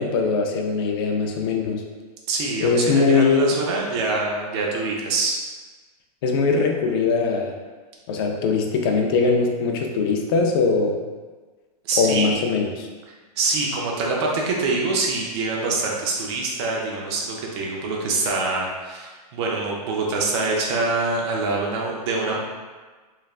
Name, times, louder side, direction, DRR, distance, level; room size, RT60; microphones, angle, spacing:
voice 1, 0.0-1.8 2.6-3.5 6.2-7.5 8.1-11.0 12.0-12.9, left 4 dB, 35° left, 2 dB, 0.4 m, -21 dB
voice 2, 2.3-5.4 11.9-12.3 13.4-22.4, right 3 dB, 45° right, -1 dB, 0.5 m, -25 dB
3.1 x 2.4 x 2.3 m, 1.3 s
hypercardioid pair, 150°, 20 cm